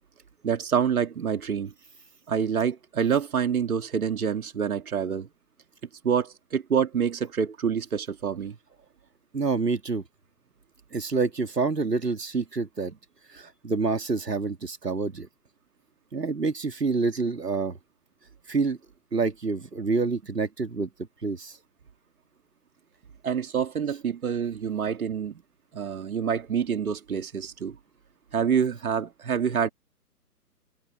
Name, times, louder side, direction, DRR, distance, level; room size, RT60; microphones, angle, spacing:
voice 1, 0.4-1.7 2.3-5.3 6.0-8.6 23.2-25.3 25.7-27.8 28.3-29.7, right 7 dB, 65° right, 2.2 m, -27 dB
voice 2, 9.3-10.0 10.9-13.0 13.3-15.3 16.1-17.7 18.5-18.8 19.1-20.9 21.2-21.6, right 4 dB, 90° right, 2.3 m, -27 dB
figure-of-eight pair, 140°, 47 cm